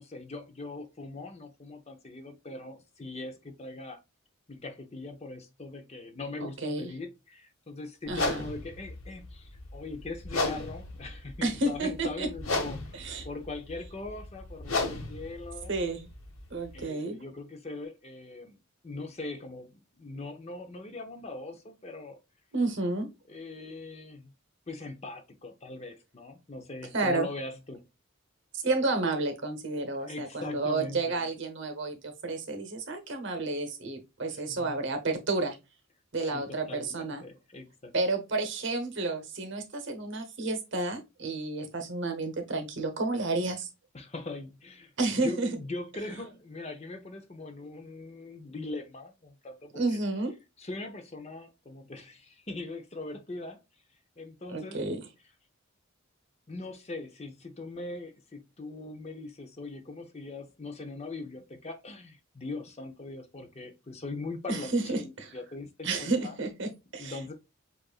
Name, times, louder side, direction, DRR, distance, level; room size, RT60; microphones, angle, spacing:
voice 1, 0.0-4.0 4.5-15.7 16.7-22.2 23.3-24.3 24.7-27.8 30.0-31.3 34.3-34.8 36.2-37.9 43.9-44.9 45.2-49.8 50.6-53.6 54.2-54.8 56.5-66.3 67.0-67.3, left 2 dB, 30° left, 0.6 m, -41 dB
voice 2, 6.4-6.9 8.1-8.4 11.4-12.3 12.9-13.3 15.7-16.1 16.5-17.2 22.5-23.1 26.9-27.3 28.5-35.6 36.1-37.2 37.9-43.7 45.0-45.5 49.7-50.3 54.5-55.0 64.5-65.3 65.8-67.2, right 3 dB, 55° right, 1.0 m, -31 dB
sound 1, 8.1-16.8, left 2 dB, 75° left, 1.1 m, -35 dB
7.6 x 2.5 x 2.4 m
head